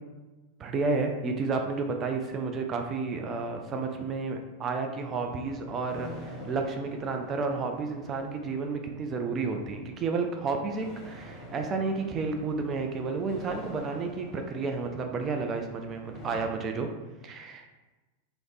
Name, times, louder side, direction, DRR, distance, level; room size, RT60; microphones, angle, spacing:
voice 1, 0.6-16.9 17.2-17.7, right 4 dB, 25° right, 4 dB, 0.4 m, -31 dB
sound 1, 5.2-16.4, left 1 dB, 25° left, 0.9 m, -47 dB
3.2 x 2.0 x 3.8 m, 1.2 s
figure-of-eight pair, 90°, 0 cm